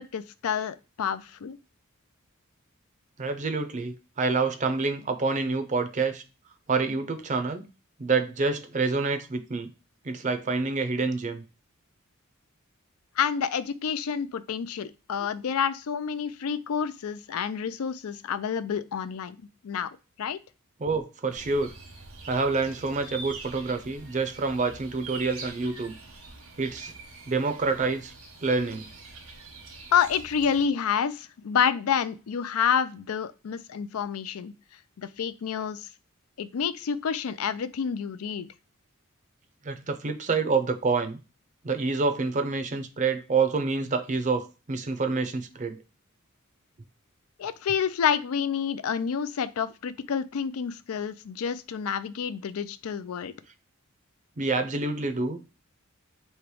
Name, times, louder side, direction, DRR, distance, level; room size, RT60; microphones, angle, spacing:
voice 1, 0.1-1.6 13.2-19.4 19.6-19.9 20.2-20.4 29.9-34.5 35.0-35.9 36.4-38.5 47.4-53.3, left 7 dB, 80° left, 0.4 m, -28 dB
voice 2, 3.2-6.2 6.7-7.6 8.0-9.7 10.0-11.4 20.8-21.7 22.3-25.9 26.6-26.9 27.3-28.1 28.4-28.8 39.6-41.2 41.6-45.8 54.4-55.4, right 4 dB, 35° right, 0.5 m, -27 dB
sound 1, 21.3-30.7, right 3 dB, 80° right, 1.2 m, -44 dB
3.2 x 2.9 x 4.6 m
head